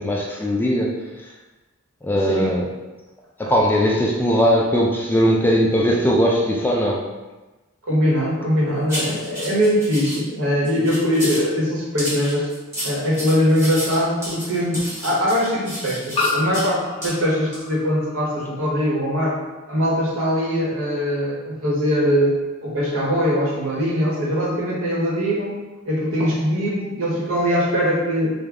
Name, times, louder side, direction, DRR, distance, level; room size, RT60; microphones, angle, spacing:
voice 1, 0.0-1.3 2.0-2.7 3.4-7.1, equal, 10° left, -1 dB, 0.3 m, -19 dB
voice 2, 7.8-12.5 12.8-19.4 19.7-22.4 22.6-25.6 25.8-28.3, equal, 80° right, -5 dB, 1.1 m, -21 dB
sound 1, 8.9-10.2 10.6-11.5 12.0-16.7 17.0-17.1 17.5-17.7, equal, 15° right, 1.3 m, -31 dB
sound 2, 12.2-12.3 13.9-14.0 16.1-18.6, left 3 dB, 25° left, 0.8 m, -29 dB
3.4 x 2.2 x 3.6 m, 1.2 s
head